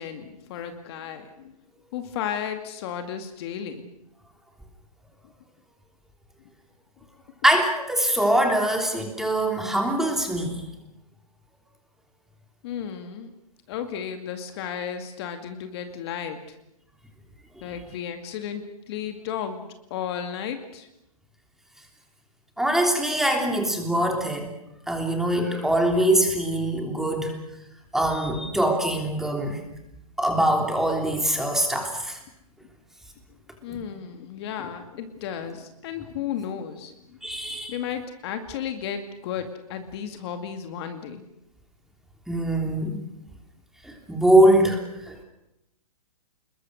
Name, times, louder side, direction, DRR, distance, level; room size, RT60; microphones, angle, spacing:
voice 1, 0.0-1.5 1.9-3.9 12.6-13.3 13.7-16.6 17.6-19.7 19.9-20.9 33.6-37.2 37.7-41.2, left 8 dB, 40° left, 6 dB, 2.3 m, -34 dB
voice 2, 7.4-10.7 22.6-24.5 24.9-27.4 27.9-29.6 30.2-32.2 33.7-33.8 37.2-37.8 42.3-43.0 43.8-45.2, right 1 dB, ahead, 2 dB, 3.2 m, -23 dB
27.0 x 21.5 x 6.5 m, 0.85 s
hypercardioid pair, 140°, 19 cm